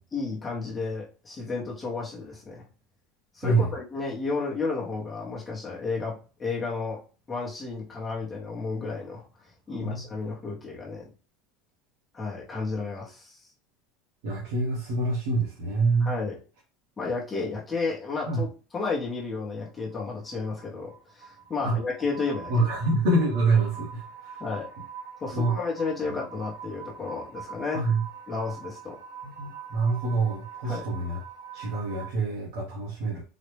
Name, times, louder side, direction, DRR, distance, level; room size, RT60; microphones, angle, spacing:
voice 1, 0.1-2.6 3.3-7.0 7.3-9.2 9.7-11.1 12.1-13.4 16.0-16.4 17.0-18.5 18.7-22.7 24.4-24.7 25.2-27.9 28.3-29.0 30.6-30.9, left 4 dB, 15° left, -3 dB, 0.7 m, -32 dB
voice 2, 14.2-16.1 18.3-18.4 21.6-21.7 22.5-24.4 25.3-25.5 27.7-28.0 29.2-31.2 31.5-33.2, right 2 dB, 85° right, -4 dB, 1.2 m, -26 dB
sound 1, 19.0-32.1, right 7 dB, 55° right, 0.9 m, -44 dB
3.9 x 2.1 x 3.2 m, 0.35 s
cardioid pair, 170°, 0 cm